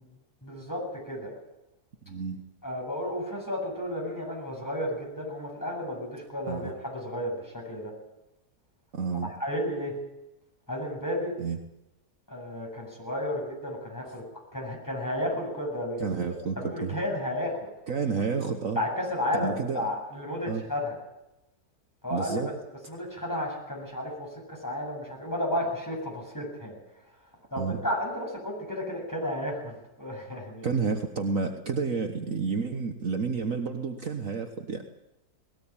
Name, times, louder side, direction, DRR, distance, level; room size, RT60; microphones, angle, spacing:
voice 1, 0.4-1.3 2.6-7.9 9.4-9.9 10.7-11.3 12.3-14.2 14.5-16.1 16.6-17.7 18.8-21.0 22.0-22.4 22.9-26.8 27.5-30.7, left 1 dB, 10° left, -1 dB, 7.9 m, -32 dB
voice 2, 2.0-2.4 6.5-6.7 8.9-9.3 11.4-11.6 16.0-17.0 17.9-18.8 19.3-19.9 20.5-20.6 22.1-22.5 27.6-27.8 30.6-34.8, right 5 dB, 55° right, 4 dB, 1.6 m, -30 dB
20.0 x 17.5 x 8.9 m, 0.93 s
omnidirectional pair, 1.8 m